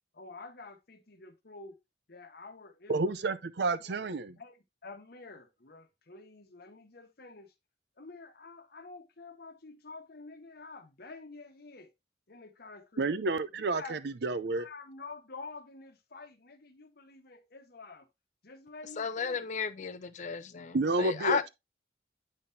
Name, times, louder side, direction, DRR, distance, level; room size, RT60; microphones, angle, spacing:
voice 1, 0.1-1.8 2.1-3.2 3.6-4.0 4.4-4.6 4.8-7.5 8.0-11.9 12.3-13.1 13.7-14.0 14.5-18.1 18.4-19.5 21.3-21.5, left 3 dB, 60° left, 1.1 m, -49 dB
voice 2, 2.9-4.4 13.0-14.7 20.7-21.5, right 3 dB, 65° right, 0.6 m, -30 dB
voice 3, 19.0-21.5, left 6 dB, 45° left, 0.4 m, -33 dB
8.6 x 5.6 x 2.6 m
head